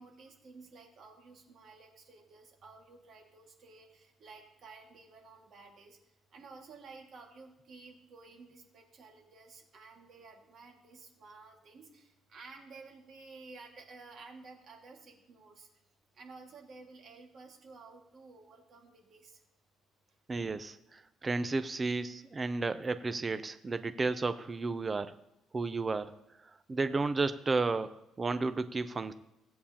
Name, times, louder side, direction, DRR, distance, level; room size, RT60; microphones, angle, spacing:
voice 1, 0.0-6.0 6.3-15.7 16.1-19.4, right 4 dB, 40° right, 1 dB, 1.9 m, -53 dB
voice 2, 20.3-25.1 25.5-26.1 26.7-29.1, right 3 dB, 20° right, 11 dB, 0.4 m, -32 dB
17.0 x 8.4 x 2.9 m, 0.86 s
cardioid pair, 170°, 0 cm